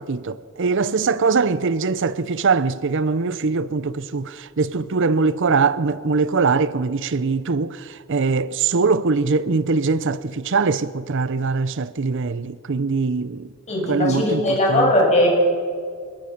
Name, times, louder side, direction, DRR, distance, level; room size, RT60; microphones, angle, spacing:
voice 1, 0.0-13.5 13.9-14.9, right 4 dB, 60° right, 0.6 m, -22 dB
voice 2, 13.7-15.3, left 1 dB, 30° left, 6.9 m, -19 dB
24.5 x 21.5 x 5.9 m
head